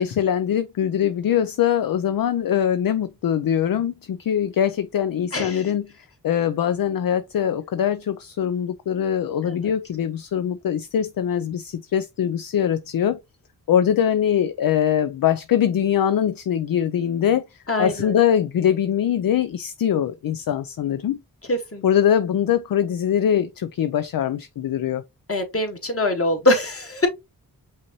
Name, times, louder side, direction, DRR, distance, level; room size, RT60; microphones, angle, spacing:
voice 1, 0.0-5.9 6.2-13.2 13.7-21.2 21.8-25.0, left 9 dB, 60° left, 0.5 m, -22 dB
voice 2, 5.3-5.6 9.4-9.7 17.7-18.2 21.5-21.8 25.3-27.1, left 1 dB, 35° left, 1.6 m, -23 dB
5.6 x 2.7 x 3.0 m
cardioid pair, 55°, 39 cm